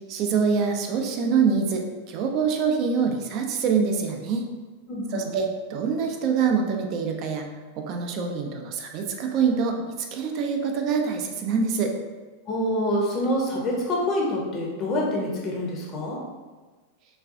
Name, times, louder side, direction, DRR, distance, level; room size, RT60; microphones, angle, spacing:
voice 1, 0.1-4.5 5.1-7.5 7.8-11.9, right 5 dB, 40° right, 3 dB, 0.4 m, -25 dB
voice 2, 4.9-5.3 12.5-16.2, left 1 dB, 35° left, -2 dB, 0.7 m, -26 dB
3.9 x 2.2 x 2.5 m, 1.3 s
figure-of-eight pair, 90°, 0 cm